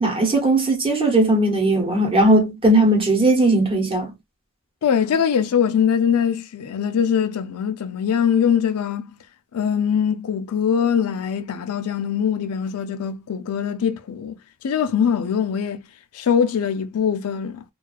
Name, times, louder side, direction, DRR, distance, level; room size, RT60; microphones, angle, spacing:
voice 1, 0.0-4.1, right 1 dB, 25° right, 0.9 m, -18 dB
voice 2, 4.8-9.1 9.5-14.4 14.6-15.8 16.1-17.6, left 7 dB, 75° left, 0.4 m, -22 dB
2.4 x 2.3 x 2.2 m
head